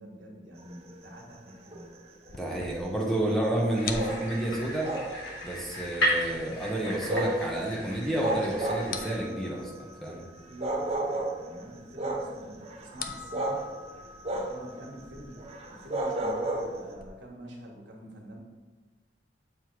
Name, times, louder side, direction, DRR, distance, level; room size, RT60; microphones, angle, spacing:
voice 1, 0.0-1.9 10.5-13.6 14.3-18.4, equal, 85° right, -1 dB, 1.4 m, -46 dB
sound 1, 0.6-0.9 1.5-1.9 2.3-2.7 3.9-4.3 4.8-5.5 5.9-6.1 7.0-7.6 8.2-9.1 10.1-10.2 10.6-11.4 12.0-13.7 14.2-14.7 15.0-15.1 15.4-16.9, right 1 dB, 35° right, 0.8 m, -32 dB
sound 2, 2.3-17.1, left 5 dB, 50° left, 0.5 m, -46 dB
voice 2, 2.3-4.9 5.4-10.2, right 1 dB, ahead, -2 dB, 0.9 m, -30 dB
sound 3, 3.7-9.2, equal, 85° left, 1.8 m, -34 dB
7.5 x 3.3 x 4.6 m, 1.3 s
head